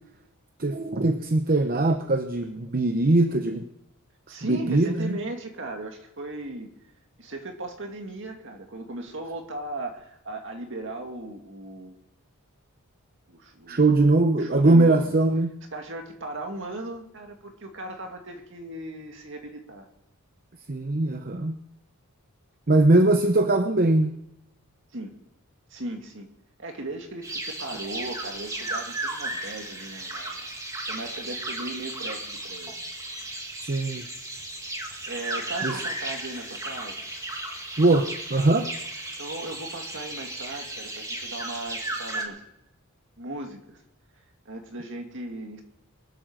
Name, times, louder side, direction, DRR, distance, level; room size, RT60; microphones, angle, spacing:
voice 1, 0.6-3.6 4.4-5.2 13.7-15.5 20.7-21.6 22.7-24.2 33.6-34.0 35.6-35.8 37.8-38.7, right 2 dB, 40° right, 7 dB, 0.8 m, -21 dB
voice 2, 4.3-6.7 7.2-12.0 13.3-13.8 14.4-15.0 15.7-19.9 24.9-25.1 25.7-26.3 26.6-30.5 30.9-32.7 35.1-37.1 39.2-42.4 43.2-43.8 44.5-45.6, right 2 dB, 55° right, 3 dB, 2.3 m, -37 dB
sound 1, 27.2-42.2, right 2 dB, 15° right, 1.9 m, -35 dB
23.0 x 7.9 x 6.6 m, 0.85 s
head